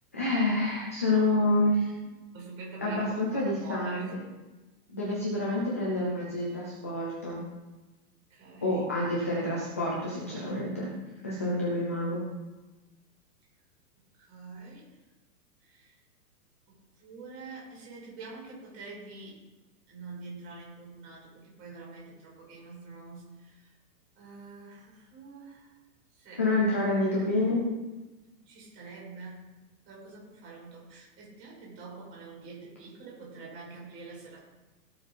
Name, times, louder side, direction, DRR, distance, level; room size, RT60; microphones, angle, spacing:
voice 1, 0.1-1.9 2.8-4.2 4.9-7.4 8.6-10.9 11.2-12.2 26.4-27.6, left 2 dB, 10° left, -5 dB, 0.4 m, -28 dB
voice 2, 2.3-4.1 8.3-8.8 14.2-14.9 15.6-16.0 16.7-19.4 19.9-23.7 24.2-25.7 26.1-26.4 28.5-29.4 29.9-34.5, right 3 dB, 30° right, -3 dB, 5.2 m, -46 dB
17.0 x 7.1 x 5.2 m, 1.1 s
hypercardioid pair, 170°, 47 cm